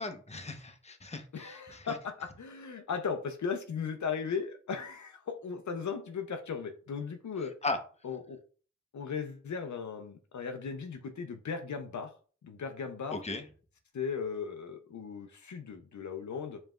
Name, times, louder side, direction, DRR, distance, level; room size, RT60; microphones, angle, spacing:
voice 1, 0.0-2.0 7.6-7.8 13.1-13.5, left 2 dB, 20° left, 5 dB, 0.8 m, -37 dB
voice 2, 1.3-7.5 8.0-8.4 8.9-12.1 12.4-13.2 13.9-16.6, left 6 dB, 80° left, 6 dB, 0.6 m, -37 dB
5.0 x 3.2 x 2.3 m, 0.40 s
cardioid pair, 40°, 29 cm